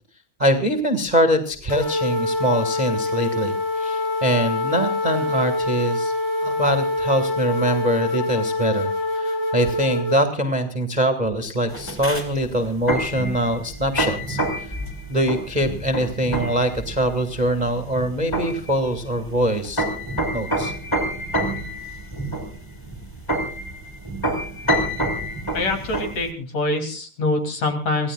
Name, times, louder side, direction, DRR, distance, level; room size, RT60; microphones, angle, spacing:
voice 1, 0.4-6.1 6.4-14.7 15.1-19.8 20.3-20.7, right 1 dB, 15° right, 6 dB, 1.5 m, -23 dB
sound 1, 1.7-10.2, left 2 dB, 75° left, 5.4 m, -25 dB
sound 2, 11.7-26.3, right 1 dB, 5° left, 4.0 m, -27 dB
voice 2, 25.5-28.1, left 2 dB, 55° left, 5 dB, 4.3 m, -24 dB
27.5 x 17.5 x 2.4 m, 0.38 s
omnidirectional pair, 3.6 m